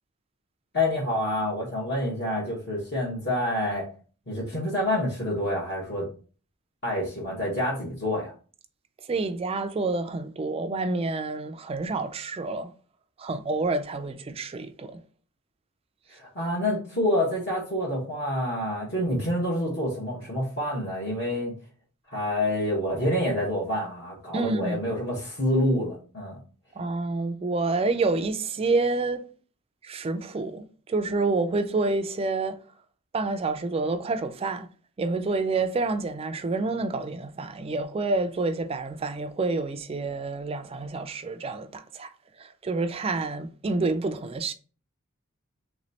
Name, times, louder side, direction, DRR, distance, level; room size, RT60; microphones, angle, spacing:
voice 1, 0.7-3.9 4.3-6.1 6.8-8.3 16.1-21.5 22.1-26.4, left 1 dB, 50° left, 1.2 m, -27 dB
voice 2, 9.1-12.7 13.2-15.0 24.3-24.8 26.8-29.2 29.8-32.6 33.1-34.7 35.0-42.1 42.4-44.5, right 3 dB, 25° right, 0.3 m, -28 dB
3.2 x 3.1 x 4.0 m
head